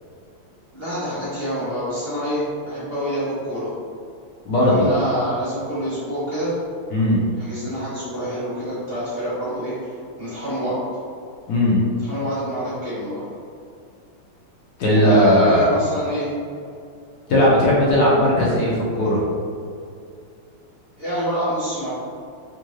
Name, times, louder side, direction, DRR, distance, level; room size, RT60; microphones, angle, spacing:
voice 1, 0.7-3.7 4.6-6.5 7.4-9.9 10.2-10.8 12.0-13.3 14.9-16.3 21.0-21.9, equal, 45° right, -11 dB, 0.8 m, -26 dB
voice 2, 4.4-4.9 6.9-7.2 11.5-11.8 14.8-15.7 17.3-19.2, left 1 dB, 70° left, -6 dB, 0.9 m, -17 dB
3.7 x 2.5 x 3.0 m, 2.4 s
omnidirectional pair, 2.4 m